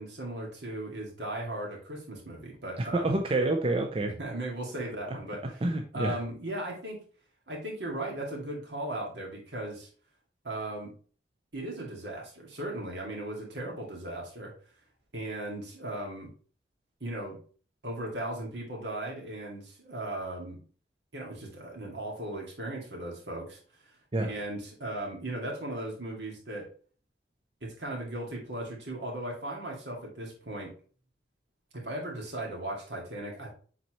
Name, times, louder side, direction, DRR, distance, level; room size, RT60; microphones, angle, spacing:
voice 1, 0.0-3.2 4.0-5.6 5.9-7.0 7.5-9.9 10.4-10.9 11.5-14.5 15.1-16.3 17.0-17.4 17.8-20.6 21.1-23.6 24.2-26.7 27.6-30.7 31.7-33.5, right 1 dB, 75° right, 2.3 m, -37 dB
voice 2, 2.8-4.1 5.1-5.2 5.6-6.2 24.1-24.3, right 2 dB, 30° right, 0.5 m, -28 dB
7.3 x 4.1 x 3.1 m
head